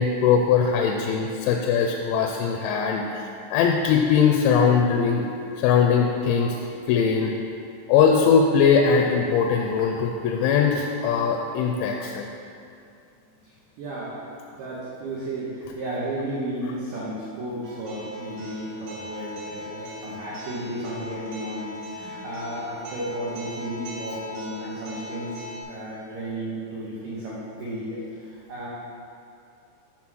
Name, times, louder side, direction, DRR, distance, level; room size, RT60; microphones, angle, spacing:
voice 1, 0.0-5.3 5.5-6.6 6.9-7.3 7.9-12.3, left 6 dB, 85° left, 1 dB, 2.8 m, -21 dB
voice 2, 13.4-14.3 14.5-28.7, right 1 dB, 85° right, -7 dB, 1.9 m, -33 dB
Acoustic guitar, 17.6-25.6, left 2 dB, 60° right, 2.7 m, -39 dB
7.4 x 3.8 x 6.1 m, 2.5 s
omnidirectional pair, 5.2 m